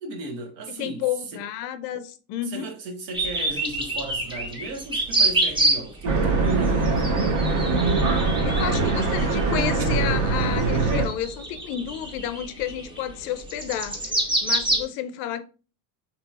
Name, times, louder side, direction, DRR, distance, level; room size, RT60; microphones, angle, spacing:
voice 1, 0.0-1.0 2.4-7.4 9.6-9.9, right 2 dB, 70° right, 1.1 m, -35 dB
voice 2, 0.7-2.7 8.3-14.0 14.4-15.4, left 11 dB, 55° left, 0.5 m, -31 dB
sound 1, 3.1-6.1 6.4-14.9, right 2 dB, 10° right, 0.6 m, -27 dB
sound 2, 6.0-11.1, right 3 dB, 40° right, 0.9 m, -22 dB
3.8 x 2.9 x 2.3 m
supercardioid pair, 110°, 48 cm